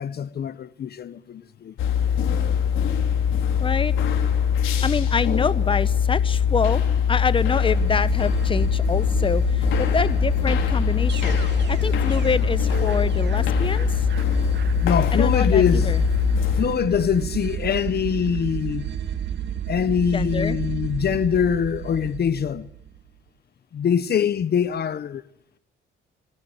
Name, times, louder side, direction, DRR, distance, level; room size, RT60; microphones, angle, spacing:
voice 1, 0.0-1.7 14.8-15.9 16.6-18.9 19.7-22.7 23.7-25.2, left 8 dB, 55° left, 1.1 m, -23 dB
sound 1, 1.8-16.6, left 8 dB, 85° left, 4.9 m, -22 dB
voice 2, 3.6-3.9 4.8-6.8 7.1-11.4 11.7-14.1 15.1-16.0 20.1-20.6, left 5 dB, 25° left, 1.1 m, -26 dB
sound 2, 7.6-23.0, right 10 dB, 60° right, 2.4 m, -31 dB
26.0 x 16.5 x 7.9 m
cardioid pair, 90°, 20 cm